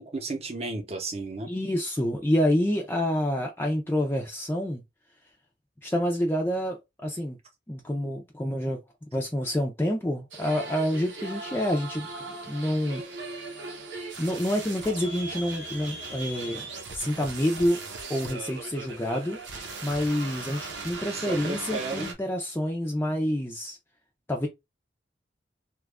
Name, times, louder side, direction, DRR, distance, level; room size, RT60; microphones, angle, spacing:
voice 1, 0.0-1.5 21.1-22.1, right 3 dB, 35° right, 0.8 m, -33 dB
voice 2, 1.5-4.8 5.8-7.4 7.7-8.8 9.1-12.1 12.5-13.5 14.2-16.7 16.9-17.8 18.1-19.4 19.8-23.8 24.3-24.5, equal, 15° left, 0.5 m, -28 dB
sound 1, 10.3-22.1, right 3 dB, 90° right, 0.8 m, -38 dB
3.0 x 2.3 x 3.4 m
head